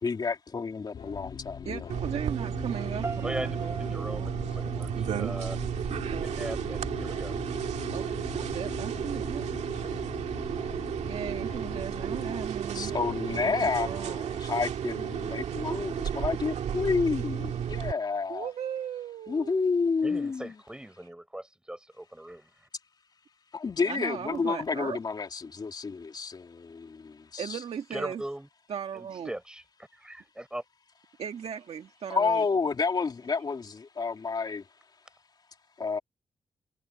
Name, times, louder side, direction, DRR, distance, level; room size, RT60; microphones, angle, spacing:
voice 1, 0.0-1.9 12.7-18.5 19.3-20.5 23.5-27.6 32.1-34.7 35.8-36.0, left 4 dB, 35° left, 3.0 m, -30 dB
sound 1, 0.9-12.5, left 7 dB, 60° left, 1.9 m, -42 dB
voice 2, 1.7-4.3 6.1-6.3 7.9-9.4 11.0-12.9 13.3-14.2 18.3-19.7 23.9-25.0 27.4-28.2 28.7-29.3 31.2-32.4, right 8 dB, 60° right, 1.7 m, -37 dB
sound 2, 1.9-17.9, right 9 dB, 80° right, 2.1 m, -33 dB
sound 3, 3.0-6.0, right 4 dB, 25° right, 3.0 m, -42 dB
voice 3, 3.2-5.6 6.2-7.3 20.0-22.5 27.9-28.5 28.9-29.6 29.9-30.6, right 1 dB, 5° right, 5.7 m, -39 dB
wide cardioid pair, 125°, 12 cm